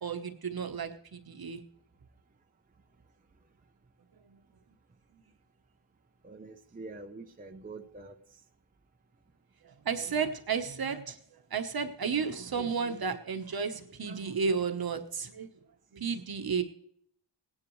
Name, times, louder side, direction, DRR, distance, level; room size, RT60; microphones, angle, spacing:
voice 1, 0.0-1.6 4.2-4.4 5.1-5.2 9.6-11.2 11.5-15.5 15.9-16.6, right 5 dB, 50° right, 7 dB, 1.1 m, -33 dB
voice 2, 6.2-8.1, right 3 dB, 20° right, 4 dB, 0.7 m, -45 dB
18.5 x 10.0 x 3.1 m, 0.66 s
wide cardioid pair, 175°, 46 cm